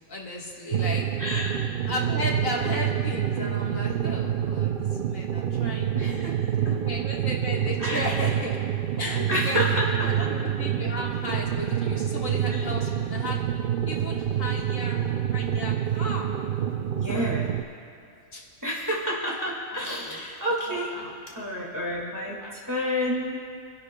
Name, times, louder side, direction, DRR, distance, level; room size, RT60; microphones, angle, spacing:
voice 1, 0.0-1.0 1.9-6.2 6.6-8.6 9.0-9.6 10.0-13.4 13.9-15.0 15.3-16.3 17.0-17.4 18.3-18.4 19.4-20.2 20.7-21.1 22.4-22.5, left 2 dB, 65° left, -2 dB, 1.9 m, -35 dB
sound 1, 0.7-17.6, right 9 dB, 85° right, 0.4 m, -27 dB
voice 2, 1.2-1.7 5.9-6.8 7.8-8.1 9.3-10.3 12.5-12.7 16.9-17.7 18.6-21.0 21.3-23.4, equal, 15° right, -4 dB, 1.8 m, -30 dB
29.0 x 11.0 x 2.2 m, 2.5 s
omnidirectional pair, 1.5 m